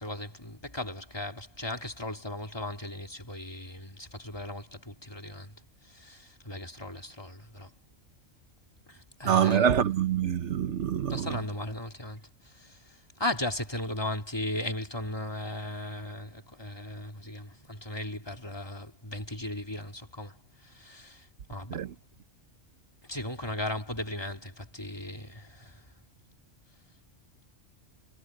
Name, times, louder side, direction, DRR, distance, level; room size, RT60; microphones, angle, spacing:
voice 1, 0.0-5.5 5.8-7.7 8.9-9.8 11.1-21.9 23.1-25.9, left 1 dB, 20° left, 3.3 m, -37 dB
voice 2, 9.2-11.3 21.7-21.9, right 9 dB, 65° right, 1.1 m, -25 dB
omnidirectional pair, 1.3 m